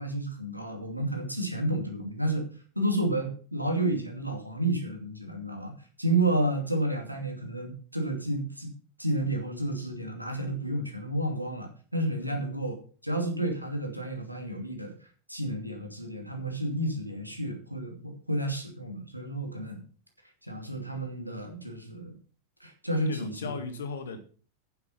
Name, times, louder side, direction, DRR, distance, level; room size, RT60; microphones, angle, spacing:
voice 1, 0.0-2.5 2.8-5.7 6.0-8.7 9.0-12.7 13.0-14.9 15.3-19.8 20.4-22.2 22.6-23.5, right 1 dB, 90° right, 2.5 m, -31 dB
voice 2, 23.1-24.2, left 4 dB, 65° left, 1.9 m, -37 dB
9.4 x 8.1 x 5.6 m
figure-of-eight pair, 90°, 0 cm